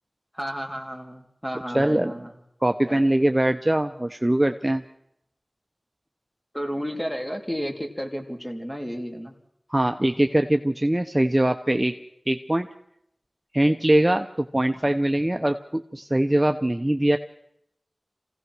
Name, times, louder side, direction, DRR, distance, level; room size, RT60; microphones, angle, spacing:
voice 1, 0.3-2.4 2.8-3.0 6.5-9.3, equal, 10° left, 3 dB, 3.4 m, -32 dB
voice 2, 1.7-2.1 2.6-4.8 9.7-11.9 12.3-12.7 13.5-17.2, right 1 dB, 25° right, 6 dB, 0.9 m, -22 dB
26.0 x 16.5 x 6.3 m, 0.77 s
wide cardioid pair, 45°, 0 cm